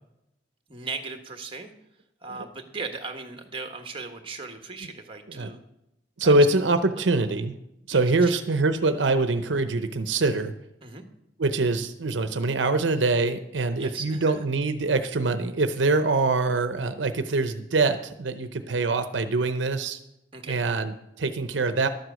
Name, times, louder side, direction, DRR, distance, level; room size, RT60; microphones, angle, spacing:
voice 1, 0.7-1.7 2.2-5.6 6.2-6.4 7.0-7.1 7.9-8.4 10.8-11.0 13.8-14.4 20.3-20.6, right 4 dB, 30° right, 6 dB, 1.4 m, -37 dB
voice 2, 6.2-7.5 7.9-10.5 11.4-20.0 20.5-21.9, right 3 dB, 80° right, 9 dB, 0.7 m, -24 dB
12.5 x 7.9 x 6.3 m, 0.86 s
head